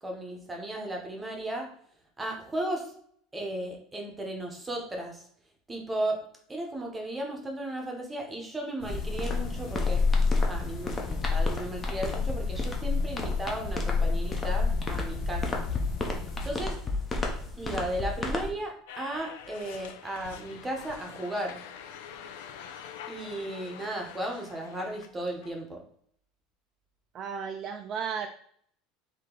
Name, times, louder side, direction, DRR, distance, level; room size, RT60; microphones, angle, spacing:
voice 1, 0.0-1.7 2.2-2.9 3.3-5.2 5.7-6.2 6.5-10.0 10.5-15.6 16.4-16.8 17.6-21.6 23.1-25.8, right 1 dB, 10° right, 1 dB, 0.9 m, -35 dB
sound 1, 8.8-16.5, left 4 dB, 40° left, 0.9 m, -29 dB
sound 2, 8.9-18.5, left 2 dB, 15° left, 0.7 m, -34 dB
sound 3, 18.9-25.5, left 8 dB, 85° left, 0.6 m, -45 dB
voice 2, 27.1-28.3, right 6 dB, 30° right, 5 dB, 0.4 m, -34 dB
4.9 x 2.8 x 3.8 m, 0.62 s
cardioid pair, 165°, 0 cm